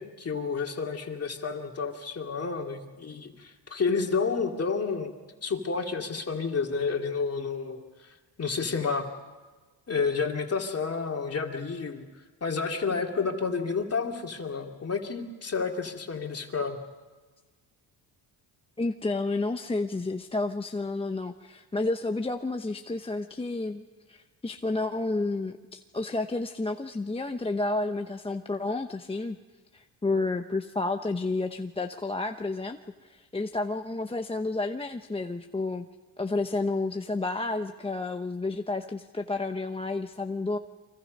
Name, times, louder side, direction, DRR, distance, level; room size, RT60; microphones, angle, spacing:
voice 1, 0.0-5.1 5.4-7.8 8.4-9.1 9.9-12.0 12.4-16.8, left 5 dB, 35° left, 2 dB, 2.8 m, -30 dB
voice 2, 18.8-29.4 29.7-35.8 36.2-40.6, left 2 dB, 15° left, 5 dB, 0.8 m, -31 dB
30.0 x 24.5 x 5.4 m, 1.3 s
cardioid pair, 115°, 42 cm